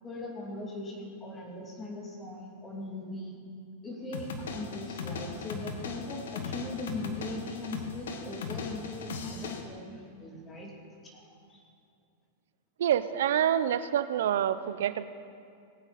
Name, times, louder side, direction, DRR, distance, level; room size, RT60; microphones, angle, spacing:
voice 1, 0.0-3.4 3.8-10.7 11.0-11.6, left 2 dB, 15° left, -2 dB, 2.6 m, -40 dB
sound 1, 4.1-9.6, left 4 dB, 90° left, 1.4 m, -38 dB
voice 2, 12.8-15.1, right 10 dB, 80° right, 13 dB, 0.6 m, -27 dB
20.0 x 9.2 x 4.2 m, 2.3 s
supercardioid pair, 155°, 0 cm